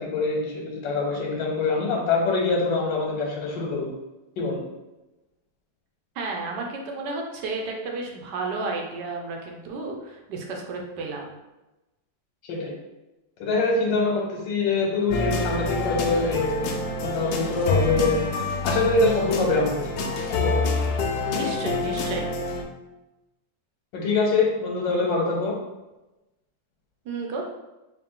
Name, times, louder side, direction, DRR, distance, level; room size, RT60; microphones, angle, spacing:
voice 1, 0.0-3.9 4.4-4.6 12.4-12.8 13.4-16.6 17.0-18.2 18.6-19.9 20.4-20.6 23.9-25.6, left 3 dB, 90° left, -1 dB, 1.4 m, -24 dB
voice 2, 6.2-11.3 21.2-22.3 27.0-27.5, right 3 dB, 75° right, 1 dB, 1.3 m, -32 dB
sound 1, 15.1-22.6, left 3 dB, 70° left, 1.0 m, -27 dB
3.9 x 2.4 x 3.7 m, 1.0 s
omnidirectional pair, 1.9 m